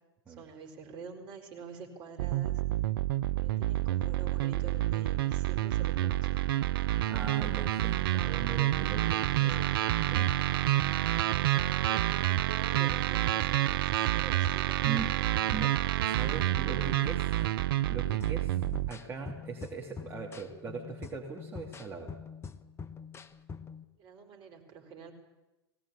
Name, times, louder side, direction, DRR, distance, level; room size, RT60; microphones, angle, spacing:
voice 1, 0.3-2.6 3.4-7.1 8.1-8.6 9.4-9.7 11.3-15.5 16.8-16.9 17.3-17.5 23.9-25.1, right 5 dB, 35° right, 4 dB, 4.5 m, -48 dB
sound 1, 2.2-18.9, right 13 dB, 60° right, 0.7 m, -28 dB
voice 2, 7.1-9.7 10.1-10.3 14.8-15.1 15.5-15.7 16.0-17.2 17.9-18.6 18.9-22.1, right 5 dB, 15° right, -2 dB, 2.9 m, -40 dB
sound 2, 18.2-23.8, left 5 dB, 20° left, 1.0 m, -45 dB
19.5 x 18.0 x 8.6 m, 1.1 s
figure-of-eight pair, 100°, 14 cm